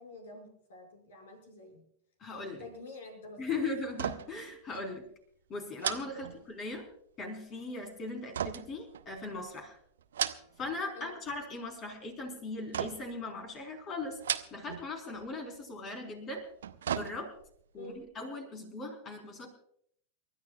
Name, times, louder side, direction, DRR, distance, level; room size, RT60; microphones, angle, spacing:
voice 1, 0.0-1.9 2.6-3.6 6.1-6.4 10.9-11.1 17.8-18.0, left 2 dB, 60° left, 3 dB, 5.8 m, -49 dB
voice 2, 2.2-2.6 3.4-5.1 5.5-6.9 7.2-9.8 10.6-14.2 14.5-16.5 16.9-17.3 17.7-19.5, left 3 dB, 30° left, 5 dB, 4.0 m, -39 dB
sound 1, 3.9-4.5 4.7-4.9 5.8-6.9 8.3-9.5 10.0-10.8 11.1-11.6 12.7-13.2 14.1-14.9 15.2-15.3 16.4-17.6 18.0-18.1, right 9 dB, 65° right, 0.7 m, -36 dB
29.0 x 13.5 x 2.4 m, 0.66 s
figure-of-eight pair, 90°, 0 cm